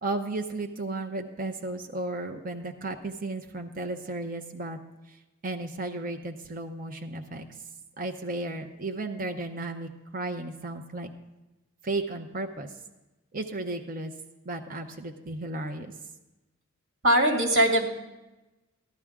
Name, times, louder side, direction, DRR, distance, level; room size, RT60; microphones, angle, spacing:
voice 1, 0.0-4.8 5.1-5.2 5.4-7.5 8.0-11.1 11.8-12.7 13.3-14.1 14.5-15.9, right 2 dB, 40° right, 4 dB, 0.7 m, -34 dB
voice 2, 17.0-17.9, equal, 70° right, 0 dB, 2.2 m, -21 dB
15.0 x 11.0 x 3.6 m, 1.0 s
head